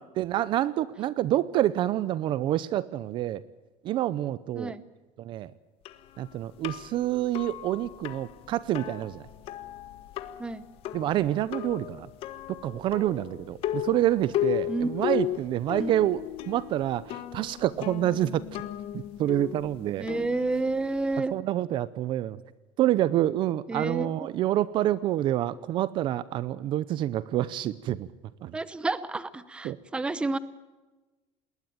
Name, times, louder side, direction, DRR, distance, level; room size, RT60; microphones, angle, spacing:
voice 1, 0.2-3.4 3.8-4.8 5.2-5.5 6.2-9.2 10.9-12.1 12.6-18.4 18.9-20.1 21.3-22.4 22.8-28.1 28.4-28.6 29.6-29.8, right 13 dB, 40° right, 18 dB, 0.6 m, -27 dB
sound 1, 5.8-21.2, left 13 dB, 45° left, 1.4 m, -36 dB
voice 2, 20.0-21.3 23.7-24.1 28.5-30.4, right 3 dB, 10° right, 16 dB, 0.8 m, -29 dB
20.5 x 19.0 x 8.9 m, 1.2 s
cardioid pair, 175°, 13 cm